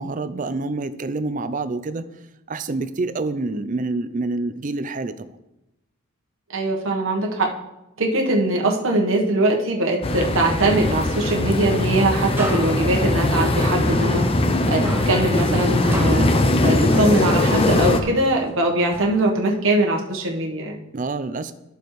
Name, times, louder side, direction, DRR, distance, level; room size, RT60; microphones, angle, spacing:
voice 1, 0.0-2.1 2.5-5.3 20.9-21.5, right 3 dB, 40° right, 12 dB, 0.5 m, -27 dB
voice 2, 6.5-7.5 8.0-14.3 14.7-16.3 16.6-20.8, right 2 dB, 65° right, 0 dB, 1.2 m, -21 dB
sound 1, 10.0-18.0, left 1 dB, 25° left, 0.6 m, -20 dB
sound 2, 12.3-14.6 14.8-17.5 17.9-19.6, right 1 dB, 10° right, 0.9 m, -34 dB
11.5 x 7.0 x 3.2 m, 0.92 s
head